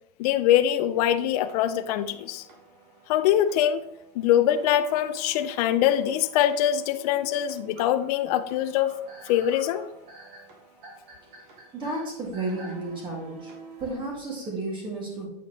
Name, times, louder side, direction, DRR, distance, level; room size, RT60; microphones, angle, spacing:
voice 1, 0.2-2.4 3.1-3.9 4.2-8.9 9.3-9.8, left 11 dB, 45° left, 9 dB, 0.4 m, -23 dB
sound 1, 1.3-14.0, right 1 dB, 60° right, 2.7 m, -50 dB
sound 2, 7.7-12.9, right 1 dB, 45° right, 2.8 m, -47 dB
voice 2, 11.7-13.5 13.8-15.3, right 2 dB, 15° right, -1 dB, 2.0 m, -32 dB
8.5 x 5.6 x 3.0 m, 0.79 s
supercardioid pair, 165°, 29 cm